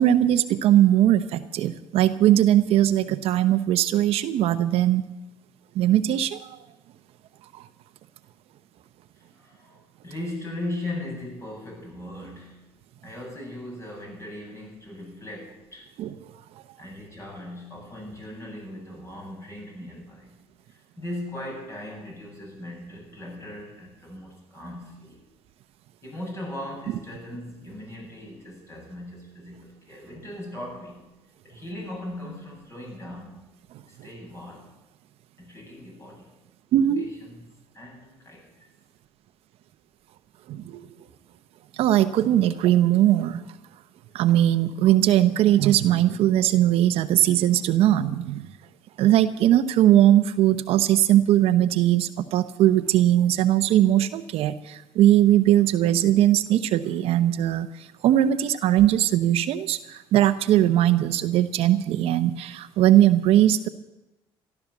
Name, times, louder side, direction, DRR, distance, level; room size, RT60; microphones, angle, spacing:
voice 1, 0.0-5.1 5.7-6.5 7.5-7.7 16.0-16.1 36.7-37.1 40.5-40.8 41.7-43.4 44.1-48.4 49.0-63.7, right 12 dB, 65° right, 11 dB, 0.9 m, -20 dB
voice 2, 9.2-12.6 13.0-15.9 16.8-20.4 20.7-25.2 26.0-31.0 31.4-33.5 33.9-34.7 35.4-36.3 37.0-37.4 37.7-38.7, left 1 dB, 25° left, 0 dB, 7.9 m, -38 dB
14.5 x 12.0 x 7.1 m, 0.98 s
cardioid pair, 105°, 11 cm